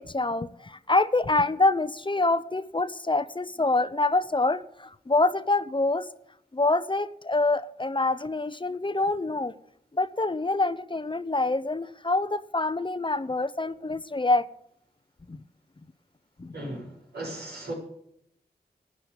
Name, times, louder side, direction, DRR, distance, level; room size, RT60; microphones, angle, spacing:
voice 1, 0.0-6.1 6.5-9.5 10.0-14.4 15.3-15.4 16.4-16.5, left 2 dB, 30° left, 13 dB, 0.8 m, -26 dB
voice 2, 16.5-17.7, right 1 dB, 90° right, -2 dB, 7.0 m, -37 dB
12.5 x 9.7 x 8.5 m, 0.73 s
cardioid pair, 55°, 16 cm